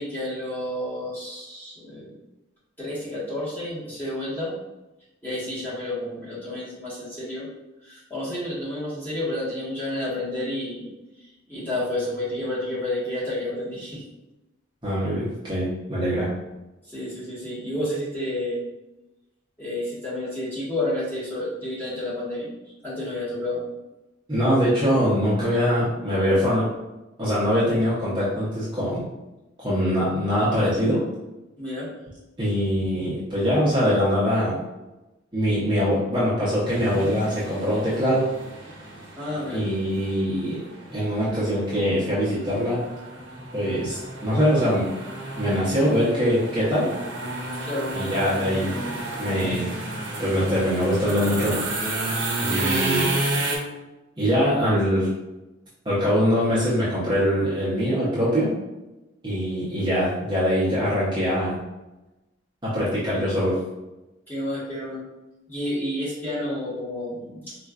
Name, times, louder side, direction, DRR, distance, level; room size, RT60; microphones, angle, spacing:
voice 1, 0.0-2.1 2.8-4.5 5.2-7.5 7.8-10.9 11.2-14.0 16.9-18.6 19.6-23.6 31.6-31.9 39.2-39.6 47.6-47.9 52.4-53.1 64.3-65.0 65.5-67.6, left 1 dB, 10° left, -10 dB, 1.4 m, -30 dB
voice 2, 14.8-16.3 24.3-26.7 27.2-29.0 29.6-31.0 32.4-34.6 35.3-38.3 39.5-40.6 40.9-42.8 43.5-44.9 45.4-46.9 47.9-48.7 49.2-49.8 50.2-51.6 52.4-53.1 54.2-55.1 55.8-58.5 59.2-61.6 62.6-63.6, equal, 25° right, -10 dB, 0.8 m, -23 dB
sound 1, 36.7-53.6, right 2 dB, 75° right, 0.8 m, -31 dB
4.3 x 2.5 x 2.4 m, 1.0 s
head